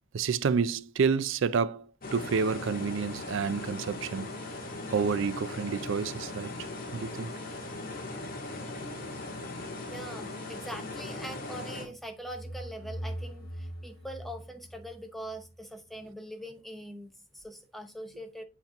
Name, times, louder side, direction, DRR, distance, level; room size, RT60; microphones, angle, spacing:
voice 1, 0.1-1.9 2.1-4.3 4.9-6.5 6.9-7.3, right 5 dB, 65° right, 0.4 m, -29 dB
sound 1, 2.0-11.8, left 2 dB, 45° left, 1.8 m, -39 dB
voice 2, 9.9-18.4, equal, ahead, 0.7 m, -42 dB
sound 2, 12.0-15.6, equal, 80° left, 2.2 m, -41 dB
7.9 x 4.4 x 3.5 m
head